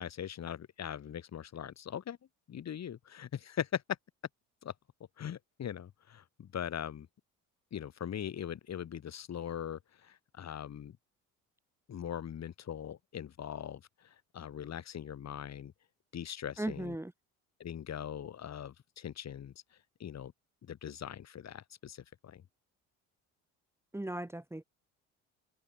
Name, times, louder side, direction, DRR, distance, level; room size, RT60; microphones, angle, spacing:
voice 1, 0.0-2.2 2.5-3.8 4.6-4.7 5.2-7.1 7.7-11.0 11.9-15.7 16.1-17.0 17.6-19.5 20.0-20.3 20.6-22.4, left 9 dB, 50° left, 2.8 m, -41 dB
voice 2, 16.6-17.1 23.9-24.6, right 1 dB, 5° right, 1.4 m, -37 dB
open air
supercardioid pair, 70°, 35 cm